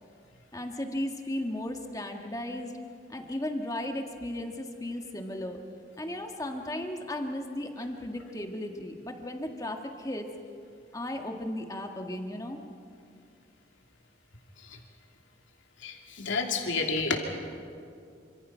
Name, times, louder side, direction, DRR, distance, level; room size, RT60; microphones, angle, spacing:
voice 1, 0.5-2.7 3.1-5.6 6.0-10.3 10.9-12.6, left 1 dB, 20° left, 3 dB, 1.8 m, -35 dB
voice 2, 15.8-17.2, left 4 dB, 85° left, 2 dB, 2.8 m, -29 dB
28.0 x 26.0 x 5.8 m, 2.4 s
head